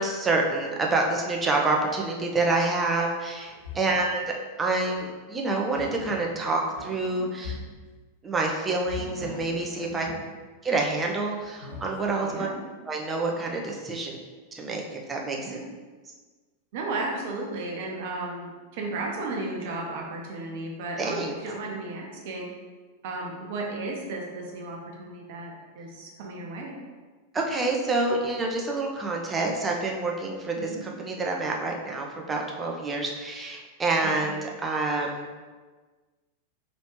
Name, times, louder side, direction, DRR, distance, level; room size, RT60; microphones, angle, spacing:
voice 1, 0.0-7.6 8.2-10.1 10.6-12.5 12.8-14.2 14.5-15.6 21.0-21.3 27.3-35.3, right 3 dB, 15° right, 0 dB, 0.7 m, -27 dB
sound 1, 3.4-4.0 4.9-5.1 5.7-6.4 6.7-7.8 8.8-10.3 11.4-12.2, left 3 dB, 80° left, 1.4 m, -40 dB
voice 2, 12.2-12.5 15.4-15.6 16.7-22.5 23.0-26.7 30.6-30.8 34.2-34.3, right 2 dB, 50° right, -1 dB, 0.9 m, -34 dB
4.8 x 3.1 x 3.1 m, 1.4 s
figure-of-eight pair, 90°, 0 cm